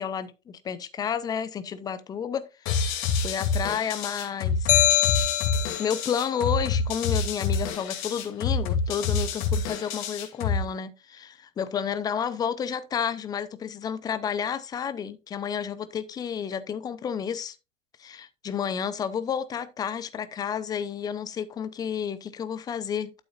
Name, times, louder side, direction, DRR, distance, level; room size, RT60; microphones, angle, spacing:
voice 1, 0.0-5.0 5.8-17.6 18.0-23.1, left 7 dB, 10° left, 0.6 m, -31 dB
sound 1, 2.7-10.7, left 4 dB, 30° left, 2.4 m, -27 dB
sound 2, 4.7-6.1, left 13 dB, 65° left, 0.5 m, -23 dB
12.0 x 7.0 x 2.4 m
figure-of-eight pair, 110°, 39 cm